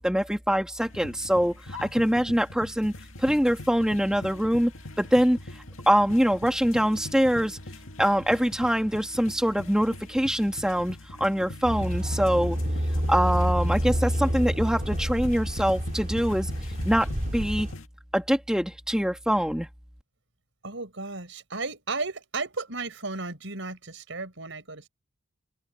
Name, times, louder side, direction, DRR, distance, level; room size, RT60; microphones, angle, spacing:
voice 1, 0.0-2.9 3.2-4.7 5.0-5.4 5.9-7.6 8.0-12.6 13.1-16.5 16.8-17.7 18.1-19.7, equal, 5° right, 2.2 m, -24 dB
sound 1, 0.8-17.9, left 2 dB, 75° left, 2.1 m, -42 dB
sound 2, 11.6-17.7, equal, 40° right, 4.0 m, -28 dB
voice 2, 20.6-24.9, right 3 dB, 65° right, 5.1 m, -34 dB
open air
head